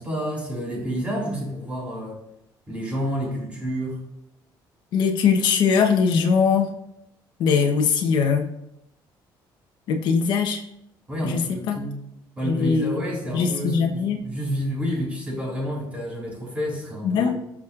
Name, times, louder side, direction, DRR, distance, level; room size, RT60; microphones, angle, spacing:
voice 1, 0.0-2.2 2.7-4.0 11.1-12.0 12.4-17.3, equal, 15° right, -3 dB, 3.6 m, -29 dB
voice 2, 4.9-6.7 7.4-8.5 9.9-10.6 11.2-11.8 12.4-13.0 13.3-14.2 17.0-17.3, left 6 dB, 65° left, 2 dB, 1.2 m, -21 dB
16.5 x 6.3 x 2.6 m, 0.82 s
cardioid pair, 165°, 8 cm